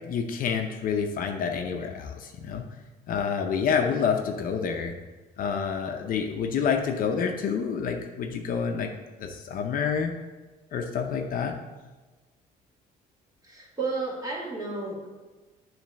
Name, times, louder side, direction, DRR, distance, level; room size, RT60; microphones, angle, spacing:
voice 1, 0.1-2.7 3.1-4.9 5.4-8.9 9.2-10.1 10.7-11.5, left 6 dB, 55° left, 4 dB, 0.7 m, -28 dB
voice 2, 13.4-15.1, right 3 dB, 20° right, -3 dB, 2.0 m, -32 dB
7.2 x 3.2 x 6.2 m, 1.2 s
cardioid pair, 110°, 17 cm